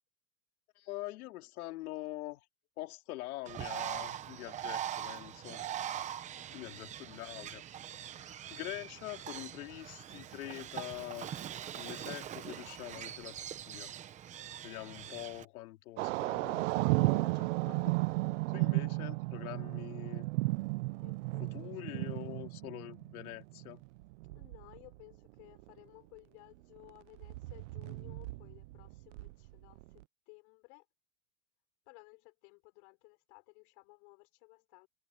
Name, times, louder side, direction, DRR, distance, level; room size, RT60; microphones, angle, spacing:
voice 1, 0.7-2.4 2.8-5.6 6.5-7.6 8.5-11.3 11.7-13.9 14.6-18.0 18.5-20.3 21.4-23.8, left 17 dB, 80° left, 3.4 m, -44 dB
Bird, 3.5-15.5, right 10 dB, 15° right, 0.8 m, -42 dB
voice 2, 6.3-6.7 21.0-22.4 24.4-29.8 30.3-30.8 31.9-34.9, left 33 dB, 50° left, 5.4 m, -58 dB
sound 1, 16.0-24.9 25.6-25.7 26.8-26.9 27.2-30.0, right 23 dB, 55° right, 0.6 m, -34 dB
supercardioid pair, 170°, 43 cm